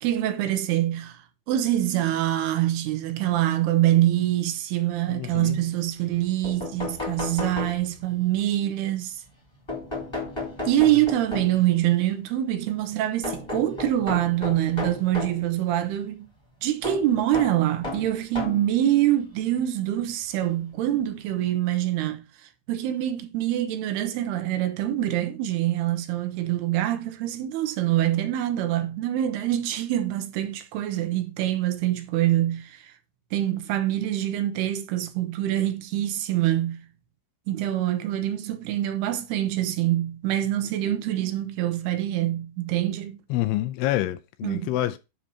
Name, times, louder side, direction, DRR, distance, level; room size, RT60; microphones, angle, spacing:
voice 1, 0.0-9.2 10.7-16.3 16.6-32.9 33.3-36.9 37.5-43.2 44.4-44.7, right 13 dB, 80° right, 2.7 m, -25 dB
voice 2, 5.1-5.6 43.3-45.0, left 15 dB, 80° left, 2.5 m, -27 dB
sound 1, 6.1-6.2 6.4-8.2 9.7-11.7 13.2-15.4 16.8-18.7 19.6-19.7 21.0-21.1 21.4-21.5, left 3 dB, 10° left, 1.5 m, -34 dB
10.0 x 3.3 x 5.2 m
omnidirectional pair, 4.8 m